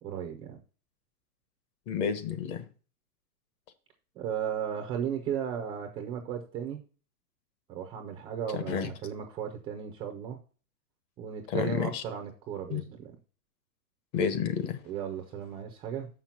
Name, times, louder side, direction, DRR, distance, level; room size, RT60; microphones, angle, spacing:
voice 1, 0.0-0.6 4.2-6.8 7.7-10.4 11.2-13.1 14.8-16.1, right 8 dB, 10° right, 4 dB, 0.4 m, -35 dB
voice 2, 1.9-2.6 8.5-8.9 11.5-12.0 12.7-12.8 14.1-14.8, left 7 dB, 45° left, 10 dB, 1.4 m, -30 dB
6.9 x 5.9 x 5.7 m, 0.38 s
hypercardioid pair, 145°, 45 cm